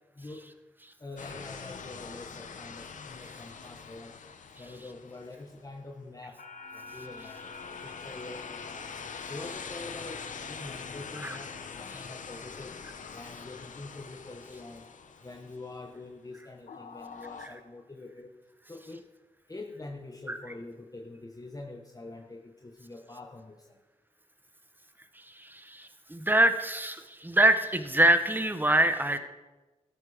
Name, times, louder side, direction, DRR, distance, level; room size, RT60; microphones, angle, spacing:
voice 1, 0.1-0.5 1.0-4.2 4.6-6.4 6.7-8.9 9.3-12.8 13.1-14.9 15.2-18.3 18.7-19.0 19.5-23.8, left 2 dB, 30° left, 2 dB, 1.4 m, -45 dB
sound 1, 1.2-5.6 6.4-16.0 16.7-17.5, left 5 dB, 75° left, 1.0 m, -43 dB
voice 2, 25.1-29.2, right 1 dB, 15° right, 9 dB, 1.4 m, -25 dB
13.5 x 8.6 x 5.2 m, 1.1 s
cardioid pair, 40°, 13 cm